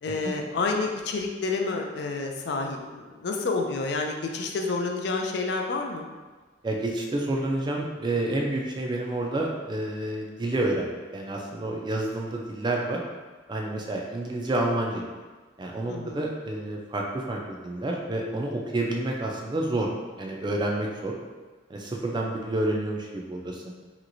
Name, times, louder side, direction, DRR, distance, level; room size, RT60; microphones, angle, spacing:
voice 1, 0.0-6.1 15.9-16.2, left 3 dB, 60° left, 2 dB, 0.4 m, -29 dB
voice 2, 6.6-13.0 13.5-15.0 15.6-19.9 20.2-21.1 21.7-23.6, right 2 dB, 25° right, 0 dB, 0.3 m, -29 dB
3.1 x 3.0 x 2.5 m, 1.3 s
head